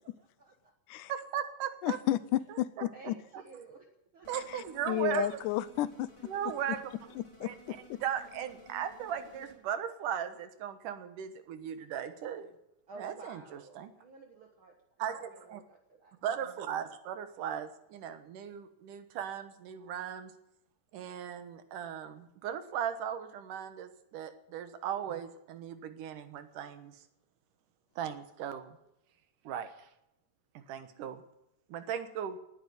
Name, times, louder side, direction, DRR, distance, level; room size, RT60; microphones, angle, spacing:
voice 1, 0.2-0.7 2.9-3.9 4.1-4.3 12.9-14.7 15.3-16.1, right 3 dB, 50° right, 3 dB, 2.0 m, -53 dB
voice 2, 1.1-2.0 2.5-2.9 4.3-5.4 6.2-6.9 7.4-12.5 13.0-13.9 15.0-15.6 16.2-20.3 20.9-27.0 28.0-28.8 29.4-29.9 30.5-31.2 31.7-32.4, right 9 dB, 85° right, 10 dB, 2.9 m, -37 dB
voice 3, 1.8-3.1 4.9-6.1 7.4-7.8, left 13 dB, 85° left, 16 dB, 2.3 m, -31 dB
sound 1, 4.2-9.5, equal, 10° left, 4.3 m, -56 dB
18.5 x 9.1 x 8.0 m, 0.84 s
omnidirectional pair, 3.6 m